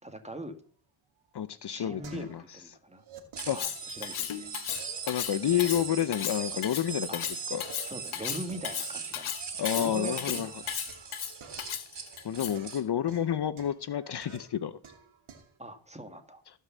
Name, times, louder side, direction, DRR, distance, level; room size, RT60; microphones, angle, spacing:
voice 1, 0.0-0.6 1.7-3.0 3.5-4.5 7.1-7.2 7.8-9.4 9.7-10.5 15.6-16.4, right 1 dB, 15° right, 7 dB, 2.0 m, -41 dB
sound 1, 1.2-2.6 2.9-4.2 4.7-6.6 6.8-9.8 10.3-15.6, right 5 dB, 85° right, 2.4 m, -51 dB
voice 2, 1.3-2.4 3.5-3.6 5.1-7.3 7.5-7.6 9.6-10.5 12.2-14.8, left 10 dB, 55° left, 14 dB, 0.7 m, -29 dB
Cutlery silverware, 3.4-12.7, left 9 dB, 85° left, 1.3 m, -35 dB
sound 2, 3.4-12.8, right 6 dB, 60° right, 3.0 m, -41 dB
16.0 x 5.6 x 7.3 m, 0.43 s
cardioid pair, 85°, 48 cm